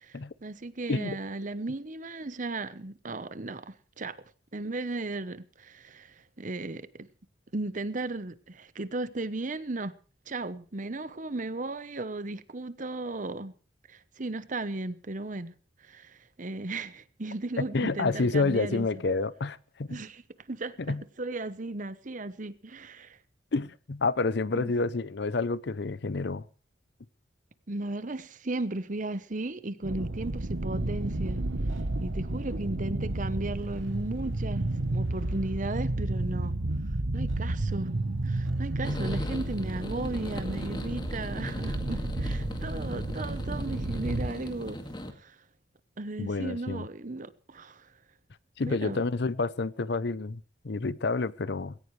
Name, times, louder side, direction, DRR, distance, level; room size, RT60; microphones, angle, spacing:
voice 1, 0.0-4.2 4.5-7.1 7.5-10.0 10.3-13.5 13.9-15.5 15.8-18.9 19.9-20.2 20.5-23.2 24.5-24.7 27.7-31.4 32.0-36.6 37.1-37.9 38.2-44.8 45.2-45.4 46.0-47.9 48.7-49.0, right 2 dB, 40° right, 0.9 m, -36 dB
voice 2, 17.6-20.0 20.8-21.0 23.5-26.5 39.2-39.3 42.9-43.0 46.2-46.9 48.6-51.7, left 3 dB, 60° left, 0.6 m, -29 dB
sound 1, 29.8-44.3, right 2 dB, 80° right, 1.2 m, -32 dB
sound 2, 38.8-45.1, left 1 dB, 25° left, 2.0 m, -39 dB
19.5 x 17.5 x 3.2 m
head